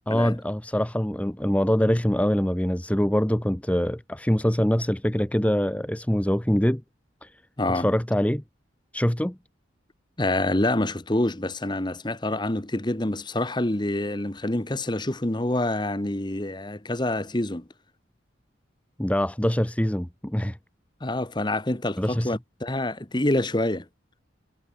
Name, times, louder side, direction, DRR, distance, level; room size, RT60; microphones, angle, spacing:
voice 1, 0.1-6.8 7.2-7.3 7.7-8.4 8.9-9.4 19.0-20.6 22.0-22.4, equal, 5° left, 0.7 m, -24 dB
voice 2, 7.6-7.9 10.2-17.7 21.0-23.9, left 1 dB, 20° left, 1.2 m, -26 dB
head